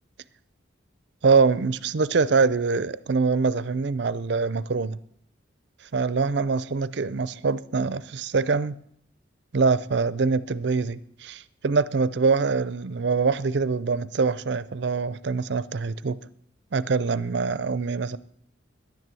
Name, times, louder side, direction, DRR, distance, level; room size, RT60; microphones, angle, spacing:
voice 1, 1.2-5.0 5.9-8.8 9.5-16.2 16.7-18.2, right 4 dB, 60° right, 0.5 m, -24 dB
11.0 x 10.5 x 7.6 m
head